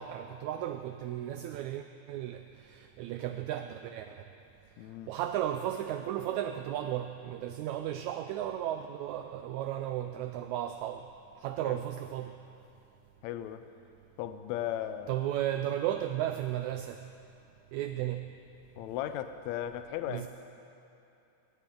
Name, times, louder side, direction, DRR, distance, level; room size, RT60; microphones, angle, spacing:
voice 1, 0.0-4.2 5.1-11.1 11.4-12.3 15.1-17.0 17.7-18.3 20.1-20.3, right 12 dB, 85° right, 8 dB, 1.7 m, -34 dB
voice 2, 4.8-5.1 11.6-11.8 13.2-13.6 14.2-15.2 18.8-20.3, left 11 dB, 85° left, 10 dB, 1.6 m, -36 dB
22.0 x 15.5 x 3.8 m, 2.8 s
omnidirectional pair, 3.8 m